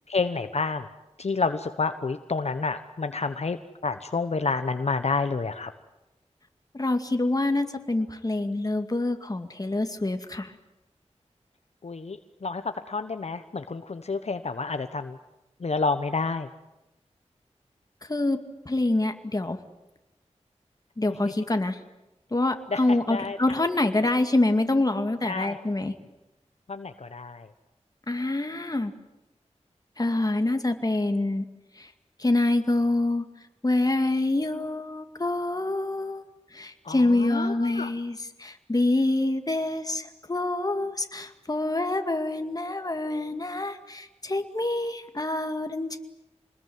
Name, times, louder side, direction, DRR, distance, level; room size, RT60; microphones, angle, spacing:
voice 1, 0.1-0.9 1.2-5.7 11.8-15.2 15.6-16.5 22.7-23.4 25.2-25.6 26.7-27.5 36.8-37.9, left 4 dB, 65° left, 8 dB, 1.2 m, -29 dB
voice 2, 6.7-10.5 18.1-18.4 18.7-19.6 21.0-21.8 22.3-25.9 28.1-28.9 30.0-31.4 31.8-31.9 32.2-33.2 33.6-36.2 36.5-46.0, left 2 dB, 30° left, 7 dB, 2.3 m, -26 dB
26.5 x 20.5 x 9.5 m, 0.95 s
wide cardioid pair, 85°, 12 cm